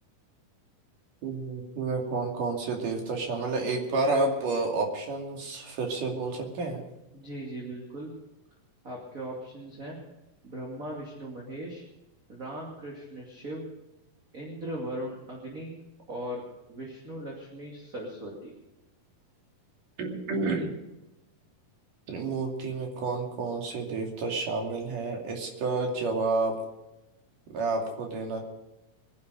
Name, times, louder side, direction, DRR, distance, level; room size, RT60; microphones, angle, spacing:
voice 1, 1.2-6.8 20.0-20.7 22.1-26.5 27.5-28.4, right 3 dB, 65° right, 1 dB, 4.1 m, -30 dB
voice 2, 7.1-8.1 8.8-10.0 10.4-11.8 12.3-13.7 14.3-15.7 16.1-16.4 16.7-18.5, right 1 dB, 25° right, -3 dB, 2.6 m, -38 dB
23.0 x 11.0 x 5.1 m, 0.97 s
omnidirectional pair, 4.1 m